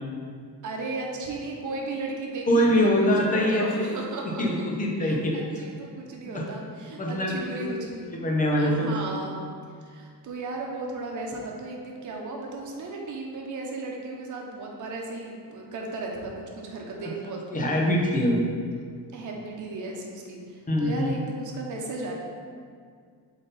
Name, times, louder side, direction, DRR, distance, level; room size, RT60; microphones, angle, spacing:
voice 1, 0.6-4.4 5.0-8.1 8.6-9.4 9.8-17.4 19.1-22.1, right 3 dB, 50° right, 0 dB, 1.1 m, -35 dB
voice 2, 2.5-3.9 4.4-5.4 6.3-6.4 7.0-7.7 8.2-9.1 17.0-17.1 17.5-18.4 20.7-21.1, equal, 20° left, -2 dB, 1.0 m, -23 dB
7.5 x 4.0 x 4.1 m, 2.1 s
cardioid pair, 150°, 40 cm